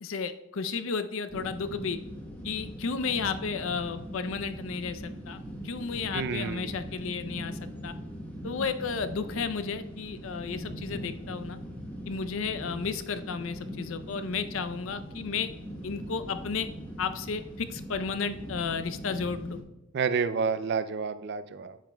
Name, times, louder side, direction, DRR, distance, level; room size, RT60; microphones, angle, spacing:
voice 1, 0.0-2.0 2.4-7.9 8.4-11.6 12.1-15.5 15.8-16.7 17.0-19.6, left 5 dB, 65° left, 11 dB, 0.5 m, -33 dB
sound 1, 1.3-19.6, equal, 10° left, 1.0 m, -41 dB
voice 2, 6.1-6.9 19.9-21.8, right 5 dB, 50° right, 12 dB, 0.4 m, -30 dB
9.0 x 7.4 x 2.2 m, 0.92 s
head